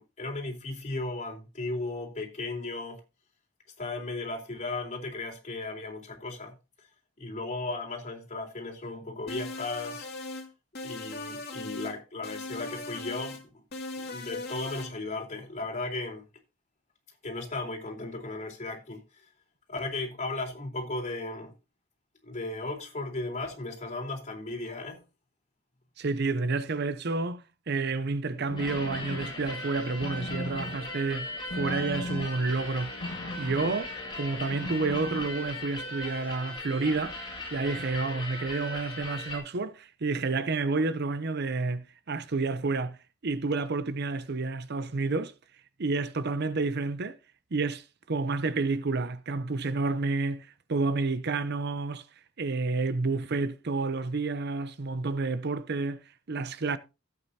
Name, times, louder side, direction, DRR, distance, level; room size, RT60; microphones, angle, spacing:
voice 1, 0.0-3.0 3.8-6.6 7.2-10.1 10.8-13.6 14.0-16.2 17.2-19.0 19.7-21.5 22.2-25.0, left 2 dB, 40° left, 3.9 m, -36 dB
sound 1, 9.3-10.5 10.8-12.0 12.2-13.4 13.7-14.9, left 2 dB, 55° left, 2.3 m, -38 dB
voice 2, 26.0-33.0 33.4-33.9 34.2-37.2 37.5-45.3 45.8-47.2 47.5-52.1 52.4-56.8, right 3 dB, 55° right, 0.7 m, -30 dB
sound 2, 28.3-35.9, left 1 dB, 70° left, 1.6 m, -40 dB
sound 3, 28.6-39.4, left 1 dB, 20° left, 7.2 m, -39 dB
16.0 x 8.7 x 2.8 m
head